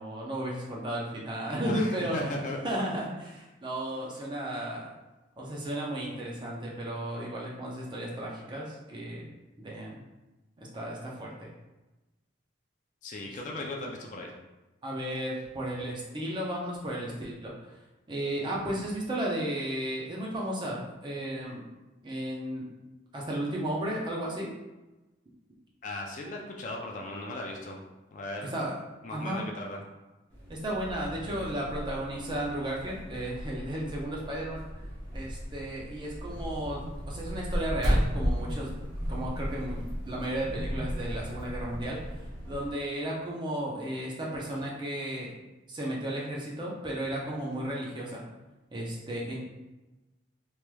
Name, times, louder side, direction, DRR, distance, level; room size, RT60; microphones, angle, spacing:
voice 1, 0.0-2.3 2.6-4.9 5.4-9.3 9.6-10.0 10.6-11.5 14.8-17.8 18.1-21.6 22.0-22.7 23.1-24.5 28.5-28.7 29.1-29.4 30.5-34.6 35.1-36.8 37.1-38.7 39.1-42.0 42.4-45.3 45.7-48.2 48.7-49.4, right 1 dB, 25° right, -4 dB, 0.6 m, -34 dB
voice 2, 1.6-2.6 13.0-14.3 25.8-27.8 28.1-28.5 29.0-29.8, left 2 dB, 40° left, 0 dB, 0.3 m, -37 dB
sound 1, 30.3-42.7, equal, 10° left, 0.8 m, -41 dB
sound 2, 36.3-42.3, equal, 80° right, 0.7 m, -32 dB
3.2 x 3.1 x 2.2 m, 1.1 s
head